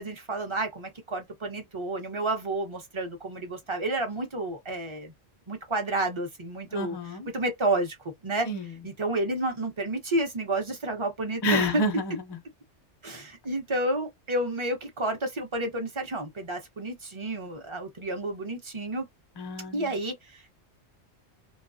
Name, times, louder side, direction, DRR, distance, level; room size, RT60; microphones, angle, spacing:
voice 1, 0.0-5.1 5.5-7.0 7.3-8.0 8.2-8.5 8.8-11.8 13.0-19.0 19.7-20.5, right 2 dB, 30° right, 0.7 m, -30 dB
voice 2, 6.7-7.3 8.4-8.7 11.4-12.4 19.4-19.9, equal, 40° left, 0.3 m, -29 dB
2.3 x 2.2 x 2.5 m
omnidirectional pair, 1.3 m